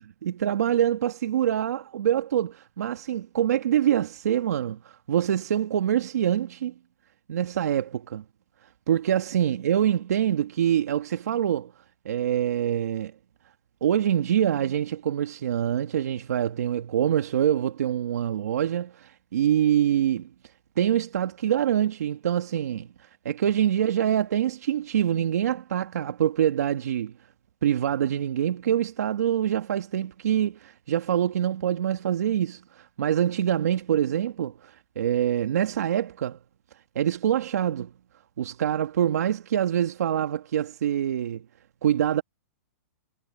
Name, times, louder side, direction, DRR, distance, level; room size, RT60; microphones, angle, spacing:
voice 1, 0.2-6.7 7.3-8.2 8.9-11.7 12.0-13.1 13.8-20.3 20.8-22.9 23.2-27.1 27.6-36.4 36.9-37.9 38.4-41.4 41.8-42.2, right 10 dB, 75° right, 1.5 m, -25 dB
hypercardioid pair, 155°, 8 cm